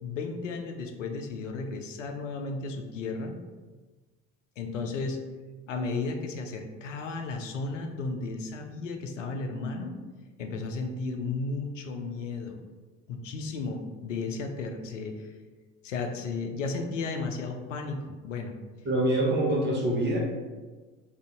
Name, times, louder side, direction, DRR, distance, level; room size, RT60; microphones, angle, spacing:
voice 1, 0.0-3.4 4.6-5.2 5.7-9.9 10.4-12.6 13.1-15.3 15.8-18.5, left 3 dB, 85° left, 4 dB, 0.5 m, -34 dB
voice 2, 18.8-20.2, right 1 dB, 30° right, -3 dB, 1.0 m, -25 dB
2.5 x 2.5 x 3.6 m, 1.3 s
figure-of-eight pair, 65°, 36 cm